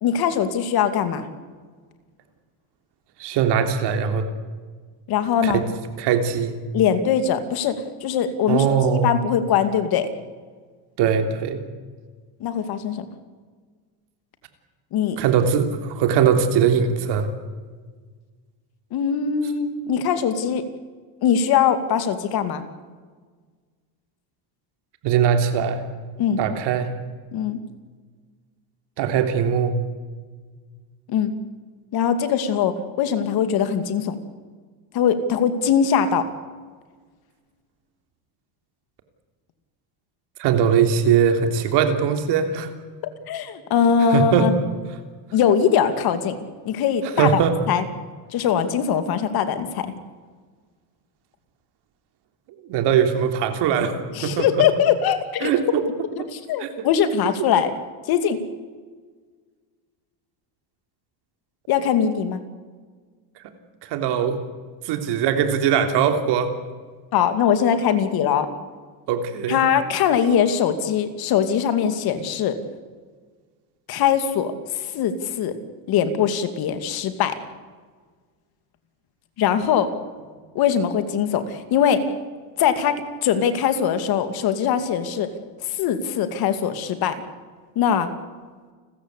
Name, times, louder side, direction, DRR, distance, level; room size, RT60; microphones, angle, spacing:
voice 1, 0.0-1.3 5.1-5.6 6.7-10.1 12.4-13.1 14.9-15.2 18.9-20.6 21.2-22.6 26.2-26.5 27.3-27.6 31.1-31.3 31.9-34.2 34.9-36.3 43.3-44.5 45.3-46.4 46.6-47.4 47.7-47.8 48.3-49.9 54.1-55.5 56.2-57.7 58.1-58.4 61.7-62.4 67.1-68.5 69.5-72.6 73.9-75.6 75.9-77.3 79.4-79.9 80.5-82.0 82.6-85.3 85.6-87.1 87.8-88.1, left 8 dB, 55° left, 9 dB, 2.6 m, -21 dB
voice 2, 3.2-4.2 5.4-5.6 6.0-6.5 8.5-9.1 11.0-11.6 15.2-17.3 25.0-25.8 26.4-26.9 29.0-29.7 40.4-42.7 44.1-44.5 47.2-47.6 52.7-53.9 54.2-54.6 55.4-55.8 56.6-56.7 63.8-64.4 64.8-66.5 69.1-69.6, right 7 dB, 65° right, 7 dB, 3.2 m, -20 dB
29.5 x 14.5 x 8.4 m, 1.5 s
cardioid pair, 140°, 44 cm